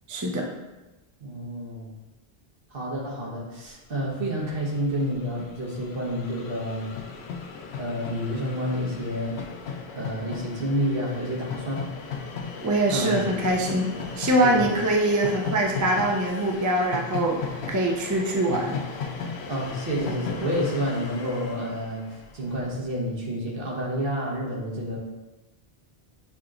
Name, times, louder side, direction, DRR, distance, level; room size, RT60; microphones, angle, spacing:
voice 1, 0.1-0.5 12.6-13.9 14.2-17.4 17.7-18.8, right 1 dB, 30° right, 0 dB, 0.3 m, -23 dB
voice 2, 1.2-1.9 2.7-6.9 7.8-9.4 9.9-11.9 12.9-13.2 14.4-14.7 19.5-22.1 22.3-25.0, equal, 65° right, -4 dB, 1.3 m, -29 dB
Train, 4.0-4.1 4.3-22.7, left 5 dB, 90° left, 0.9 m, -37 dB
7.2 x 2.9 x 2.5 m, 1.1 s
omnidirectional pair, 1.0 m